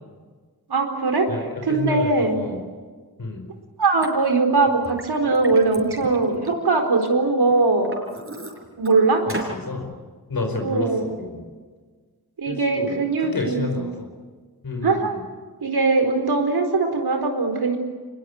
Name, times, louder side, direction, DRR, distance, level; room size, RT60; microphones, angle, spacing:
voice 1, 0.7-1.3 1.6-2.4 3.8-7.9 8.8-9.2 10.6-11.1 12.4-13.8 14.8-15.1 15.6-17.8, right 3 dB, 80° right, 4 dB, 4.4 m, -21 dB
voice 2, 1.3-2.6 3.2-3.5 9.3-9.9 10.3-11.5 12.5-14.1 14.6-15.2, left 3 dB, 65° left, 3 dB, 4.7 m, -30 dB
Liquid, 4.0-4.1 4.7-7.1 7.5-8.9 9.3-9.6, right 2 dB, 35° right, 6.1 m, -35 dB
24.5 x 20.5 x 9.4 m, 1.5 s
wide cardioid pair, 65°, 38 cm